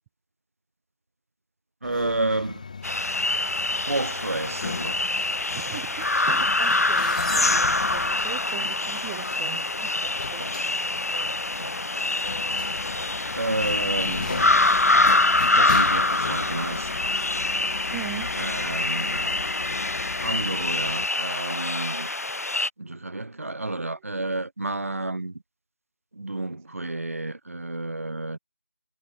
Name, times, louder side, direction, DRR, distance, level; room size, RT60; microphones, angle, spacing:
sound 1, 1.8-21.1, left 5 dB, 30° left, 1.7 m, -37 dB
voice 1, 1.8-2.6 3.9-5.0 10.4-10.5 11.6-11.7 12.0-12.2 13.3-14.5 15.5-16.9 18.4-19.4 20.2-22.1 22.8-25.4 26.1-28.4, right 2 dB, 65° right, 1.7 m, -30 dB
sound 2, 2.8-22.7, left 2 dB, 85° left, 0.6 m, -25 dB
voice 2, 5.5-10.4 17.9-18.4 22.9-23.0, right 14 dB, 5° right, 0.4 m, -39 dB
figure-of-eight pair, 165°, 8 cm